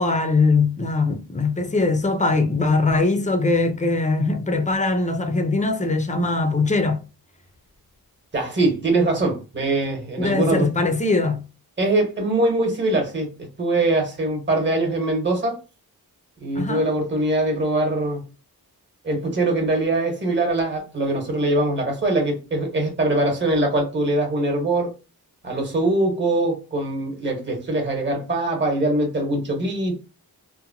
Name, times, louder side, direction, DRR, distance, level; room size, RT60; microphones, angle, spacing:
voice 1, 0.0-7.0 10.2-11.4 16.6-16.9, left 3 dB, 20° left, 0.4 m, -21 dB
voice 2, 8.3-10.7 11.8-15.6 16.4-18.2 19.0-24.9 25.4-29.9, right 2 dB, 30° right, 1.0 m, -22 dB
2.8 x 2.1 x 2.6 m
wide cardioid pair, 110°, 37 cm